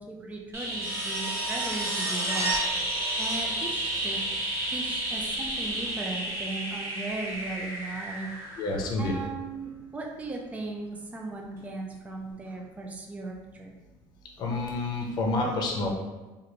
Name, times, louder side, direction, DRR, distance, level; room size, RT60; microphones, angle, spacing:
voice 1, 0.0-2.5 3.2-4.2 4.7-8.6 9.0-13.7, right 2 dB, 15° right, 0 dB, 0.4 m, -37 dB
sound 1, 0.5-9.2 11.6-11.7, right 1 dB, 30° right, 1.2 m, -31 dB
voice 2, 8.6-9.1 14.4-15.9, left 2 dB, 45° left, 0 dB, 0.7 m, -28 dB
3.2 x 2.5 x 2.8 m, 1.2 s
cardioid pair, 120°, 10 cm